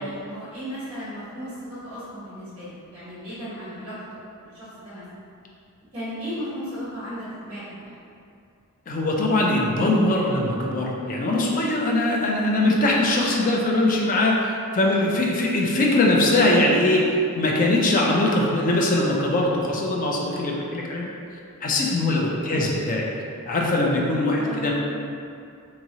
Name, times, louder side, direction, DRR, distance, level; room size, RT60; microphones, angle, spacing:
voice 1, 0.0-4.0 4.3-5.0 5.9-8.0 14.8-15.0 22.4-22.8 24.4-24.7, equal, 25° right, -12 dB, 0.9 m, -36 dB
voice 2, 8.9-21.1 21.6-23.1 23.5-24.7, left 2 dB, 40° left, -2 dB, 0.4 m, -21 dB
2.9 x 2.8 x 2.7 m, 2.5 s
head